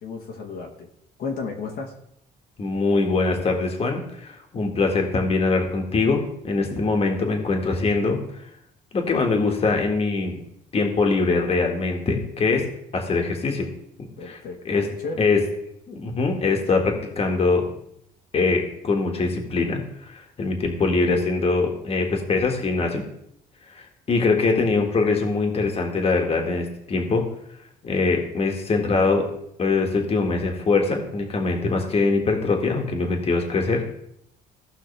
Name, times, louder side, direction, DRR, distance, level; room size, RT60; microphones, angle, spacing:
voice 1, 0.0-0.9 1.2-1.9 14.2-14.6 15.0-15.3, left 4 dB, 65° left, 0 dB, 1.7 m, -32 dB
voice 2, 2.6-8.2 8.9-10.4 10.7-12.7 12.9-13.7 14.2-14.4 14.7-14.9 15.2-15.4 15.9-17.7 18.3-23.0 23.7-27.2 27.8-29.3 29.6-33.9, left 3 dB, 35° left, 2 dB, 1.9 m, -23 dB
16.5 x 5.8 x 3.4 m, 0.76 s
cardioid pair, 110°, 17 cm